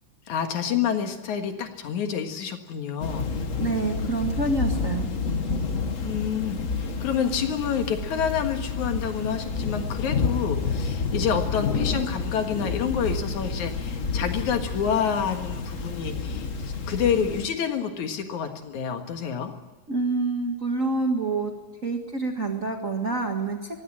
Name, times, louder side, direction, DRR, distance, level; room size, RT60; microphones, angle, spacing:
voice 1, 0.3-3.3 6.0-16.5 16.9-19.5, left 7 dB, 70° left, 6 dB, 3.0 m, -28 dB
Thunder / Rain, 3.0-17.5, left 4 dB, 50° left, 0.9 m, -29 dB
voice 2, 3.6-5.1 19.9-21.5 21.8-23.8, right 3 dB, 30° right, 2 dB, 1.6 m, -27 dB
23.0 x 16.0 x 8.8 m, 1.2 s
omnidirectional pair, 3.5 m